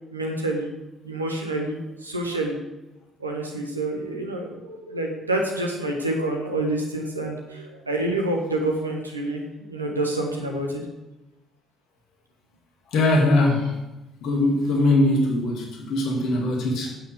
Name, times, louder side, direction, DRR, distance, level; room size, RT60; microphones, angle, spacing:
voice 1, 0.1-0.7 1.0-2.6 3.2-10.8, right 1 dB, 85° right, 1 dB, 1.5 m, -28 dB
voice 2, 12.9-13.7 14.2-17.0, left 2 dB, 55° left, 1 dB, 2.4 m, -21 dB
9.7 x 9.0 x 5.1 m, 1.0 s
figure-of-eight pair, 50°, 0 cm